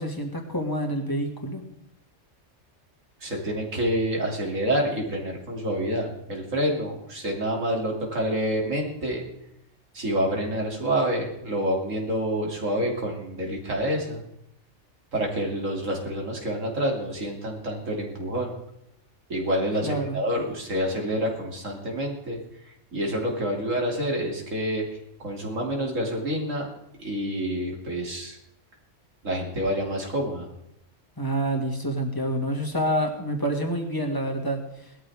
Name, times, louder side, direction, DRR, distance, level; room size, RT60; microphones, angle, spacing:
voice 1, 0.0-1.6 19.8-20.2 31.2-34.6, right 1 dB, 15° left, 1 dB, 2.2 m, -27 dB
voice 2, 3.2-9.2 9.9-14.2 15.1-18.5 19.3-22.4 22.9-24.8 25.2-26.7 27.0-28.4 29.2-30.5, equal, 85° right, 0 dB, 3.3 m, -27 dB
19.0 x 13.0 x 3.6 m, 0.80 s
omnidirectional pair, 1.3 m